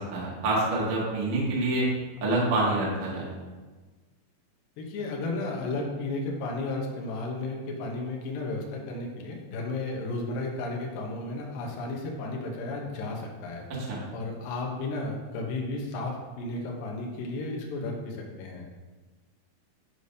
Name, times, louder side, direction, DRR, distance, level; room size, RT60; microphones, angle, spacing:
voice 1, 0.1-1.9 2.2-3.3 13.9-14.0, right 2 dB, 80° right, -5 dB, 1.2 m, -26 dB
voice 2, 4.8-18.7, left 2 dB, 85° left, -1 dB, 2.0 m, -33 dB
9.5 x 5.0 x 2.7 m, 1.3 s
omnidirectional pair, 5.4 m